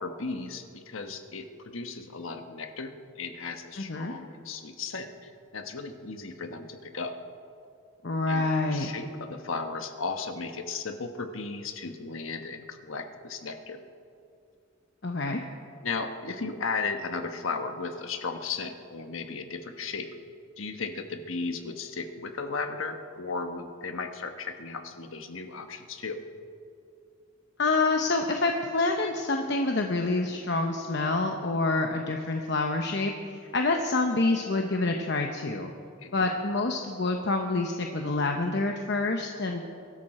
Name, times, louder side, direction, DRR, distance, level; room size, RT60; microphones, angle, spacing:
voice 1, 0.0-7.1 8.3-13.8 15.8-20.1 20.6-26.2 36.0-36.3, left 4 dB, 80° left, 6 dB, 1.2 m, -35 dB
voice 2, 3.8-4.1 8.0-8.9 15.0-15.4 27.6-33.1 33.5-35.7 36.1-39.6, left 3 dB, 55° left, 3 dB, 0.9 m, -27 dB
23.0 x 13.0 x 4.3 m, 2.4 s
head